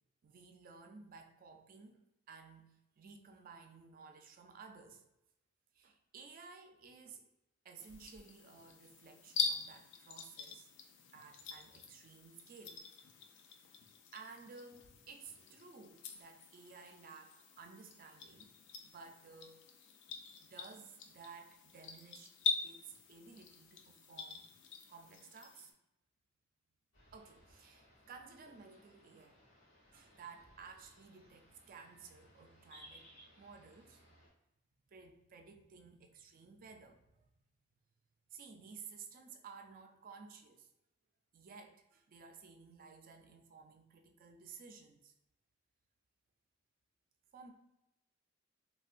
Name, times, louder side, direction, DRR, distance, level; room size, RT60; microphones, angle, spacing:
voice 1, 0.2-2.0 2.3-5.0 5.7-7.3 7.6-10.7 11.1-12.8 14.1-18.5 18.8-19.7 20.4-22.3 22.6-24.5 24.9-25.7 27.1-29.4 29.9-34.0 34.9-37.2 38.3-40.7 41.3-45.1 47.3-47.5, right 5 dB, 45° right, 5 dB, 0.3 m, -55 dB
sound 1, 7.8-25.7, left 5 dB, 60° left, 0.4 m, -44 dB
sound 2, 26.9-34.3, equal, 80° left, 1.0 m, -62 dB
3.3 x 2.1 x 2.4 m, 0.86 s
head